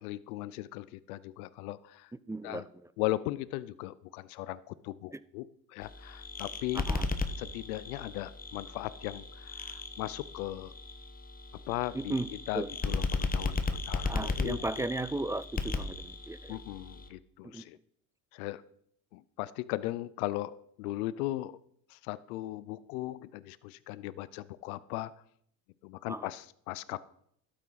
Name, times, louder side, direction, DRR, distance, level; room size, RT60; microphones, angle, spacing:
voice 1, 0.0-2.1 2.4-2.6 3.0-5.5 5.7-6.8 7.4-10.7 11.7-12.1 12.5-14.7 16.5-17.8 18.3-18.6 19.1-21.6 21.9-25.1 25.8-27.0, left 16 dB, 90° left, 17 dB, 0.6 m, -37 dB
voice 2, 2.3-2.9 6.7-7.1 11.9-12.3 12.5-12.7 14.0-16.6 17.4-17.6 26.1-26.3, right 2 dB, 5° right, 16 dB, 0.4 m, -36 dB
sound 1, 5.8-17.1, left 3 dB, 20° left, 1.2 m, -36 dB
12.5 x 8.8 x 4.0 m, 0.67 s
supercardioid pair, 85°, 43 cm